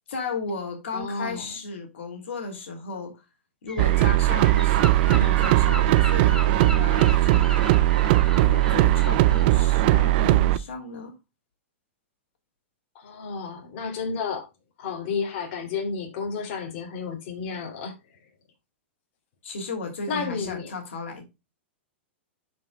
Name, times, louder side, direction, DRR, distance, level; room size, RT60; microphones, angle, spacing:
voice 1, 0.1-3.1 3.6-7.6 8.4-11.1 19.4-21.2, left 3 dB, 75° left, 2.8 m, -34 dB
voice 2, 0.9-1.6 5.1-5.3 12.9-14.5 14.8-18.2 20.1-20.7, left 5 dB, 50° left, 2.8 m, -32 dB
Gull seagull, 3.7-9.5, left 2 dB, 10° left, 1.4 m, -37 dB
sound 1, 3.8-10.6, right 15 dB, 50° right, 0.5 m, -19 dB
11.5 x 5.3 x 2.2 m
hypercardioid pair, 130°, 6 cm